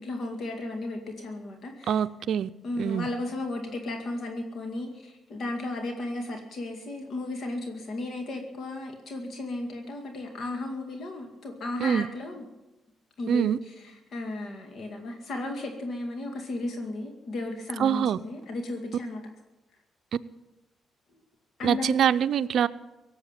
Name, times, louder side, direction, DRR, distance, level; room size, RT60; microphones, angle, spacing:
voice 1, 0.0-1.9 2.6-12.4 13.2-19.2 21.6-21.9, left 2 dB, 60° left, 3 dB, 2.2 m, -34 dB
voice 2, 1.9-2.5 2.8-3.1 11.8-12.1 13.3-13.6 17.8-18.2 21.6-22.7, right 8 dB, 65° right, 11 dB, 0.5 m, -24 dB
18.0 x 7.8 x 9.0 m, 1.0 s
cardioid pair, 90°, 0 cm